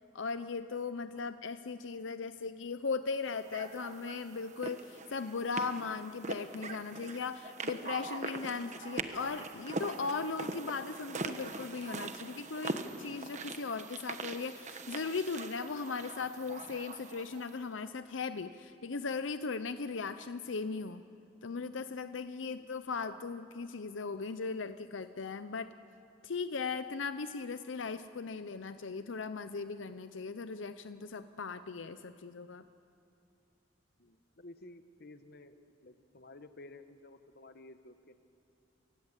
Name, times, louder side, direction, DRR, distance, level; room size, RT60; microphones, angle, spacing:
voice 1, 0.1-21.0 21.4-25.7 26.2-32.6, left 4 dB, 85° left, 11 dB, 0.7 m, -38 dB
sound 1, 3.5-17.6, right 3 dB, 40° right, 1.2 m, -42 dB
voice 2, 34.0-35.6 35.8-38.1, left 2 dB, 55° left, 10 dB, 1.1 m, -53 dB
28.0 x 17.5 x 8.2 m, 2.6 s
head